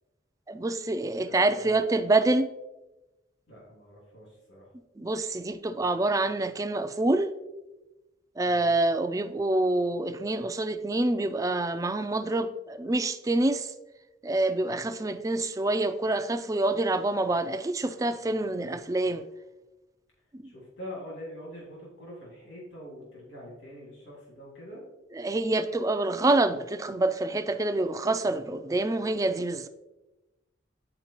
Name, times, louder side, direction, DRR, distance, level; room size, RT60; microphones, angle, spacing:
voice 1, 0.5-2.5 5.0-7.3 8.4-13.7 14.2-19.3 20.3-20.5 25.1-29.7, right 2 dB, 15° right, 0.3 m, -26 dB
voice 2, 1.3-1.9 3.5-4.7 8.4-8.7 20.4-24.8, left 1 dB, 70° left, 2.5 m, -44 dB
9.6 x 4.6 x 2.9 m
head